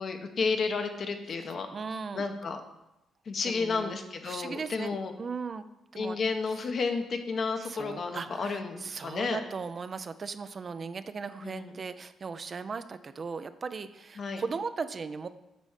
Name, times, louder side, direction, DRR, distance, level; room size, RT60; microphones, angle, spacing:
voice 1, 0.0-1.7 2.1-2.6 3.3-5.1 6.0-9.4 11.4-11.7 14.2-14.4, left 4 dB, 50° left, 6 dB, 0.9 m, -32 dB
voice 2, 1.4-2.2 3.4-4.0 4.2-5.7 5.9-6.2 6.5-6.7 7.6-15.3, right 5 dB, 40° right, 11 dB, 0.4 m, -38 dB
8.2 x 4.2 x 5.0 m, 0.91 s
cardioid pair, 90°, 0 cm